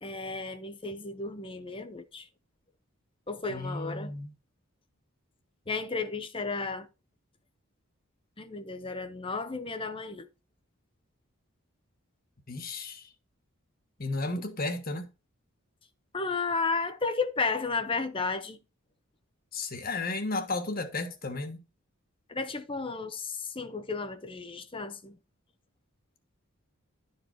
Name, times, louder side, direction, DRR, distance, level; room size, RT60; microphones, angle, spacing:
voice 1, 0.0-2.3 3.3-4.1 5.7-6.9 8.4-10.3 16.1-18.6 22.3-25.2, left 4 dB, 25° left, 0.8 m, -33 dB
voice 2, 3.5-4.3 12.5-13.1 14.0-15.1 19.5-21.6, left 2 dB, 40° left, 1.5 m, -33 dB
11.5 x 4.8 x 4.5 m
head